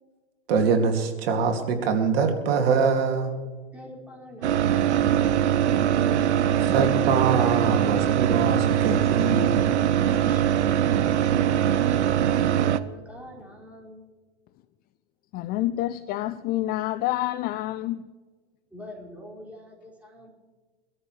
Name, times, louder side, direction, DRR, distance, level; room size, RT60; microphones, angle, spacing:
voice 1, 0.5-3.3 6.7-9.8, right 5 dB, 60° right, 2.4 m, -24 dB
voice 2, 3.7-6.4 10.2-14.0 18.7-20.3, left 1 dB, 5° right, 5.2 m, -45 dB
sound 1, 4.4-12.8, right 10 dB, 75° right, 0.8 m, -22 dB
voice 3, 15.3-18.1, left 15 dB, 30° left, 0.4 m, -28 dB
24.0 x 13.5 x 3.2 m
hypercardioid pair, 105°, 34 cm